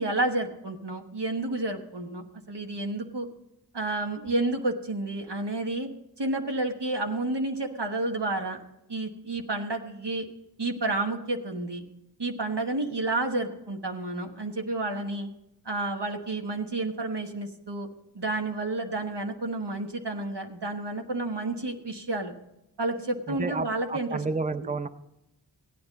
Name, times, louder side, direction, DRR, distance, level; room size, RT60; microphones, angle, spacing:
voice 1, 0.0-3.3 3.7-5.9 6.2-8.6 8.9-10.3 10.6-11.8 12.2-15.3 15.6-17.9 18.1-22.3 22.8-24.2 24.6-24.7, right 2 dB, 80° right, 2 dB, 1.3 m, -30 dB
voice 2, 23.3-24.9, right 3 dB, 20° right, 11 dB, 0.6 m, -31 dB
15.5 x 9.5 x 4.0 m, 0.88 s
wide cardioid pair, 50°, 41 cm